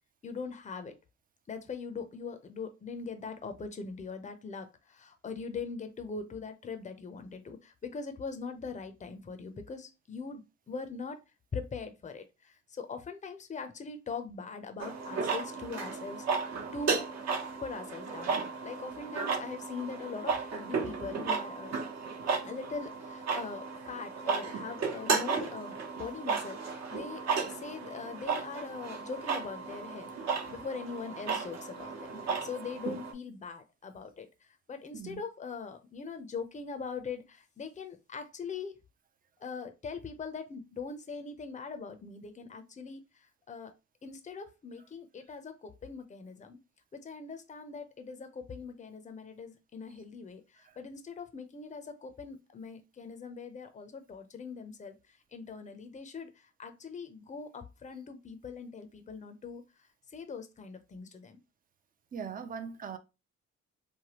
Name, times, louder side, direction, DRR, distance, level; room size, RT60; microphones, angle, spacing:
voice 1, 0.2-1.0 1.5-11.2 11.5-16.3 16.7-17.1 17.6-21.8 22.4-38.8 39.4-43.7 44.0-46.6 46.9-59.6 60.1-61.4, left 5 dB, 25° left, 0.6 m, -42 dB
sound 1, 14.8-33.1, right 5 dB, 60° right, 1.0 m, -34 dB
voice 2, 62.1-63.0, right 6 dB, 30° right, 0.5 m, -40 dB
3.3 x 2.1 x 2.9 m
cardioid pair, 90°, 30 cm